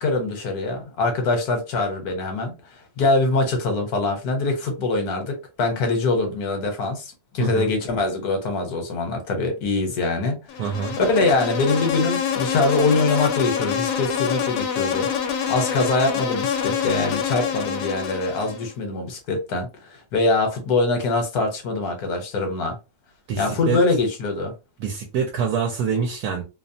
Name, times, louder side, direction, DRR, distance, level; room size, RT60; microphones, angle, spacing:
voice 1, 0.0-10.6 11.0-15.1 15.5-22.8 23.4-24.6, left 3 dB, 70° left, 1.3 m, -23 dB
Insect, 10.5-18.7, left 7 dB, 90° left, 1.2 m, -26 dB
voice 2, 10.6-11.0 23.3-23.8 24.8-26.4, right 6 dB, 75° right, 1.1 m, -25 dB
2.9 x 2.0 x 2.6 m
omnidirectional pair, 1.8 m